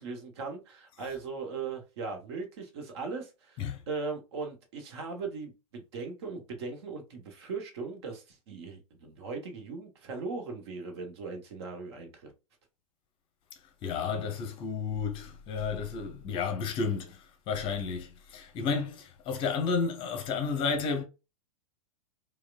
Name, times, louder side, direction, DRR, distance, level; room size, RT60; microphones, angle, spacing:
voice 1, 0.0-12.3, right 4 dB, 50° right, 1.2 m, -39 dB
voice 2, 13.8-21.0, left 5 dB, 30° left, 0.7 m, -32 dB
4.7 x 2.3 x 2.4 m
figure-of-eight pair, 95°, 17 cm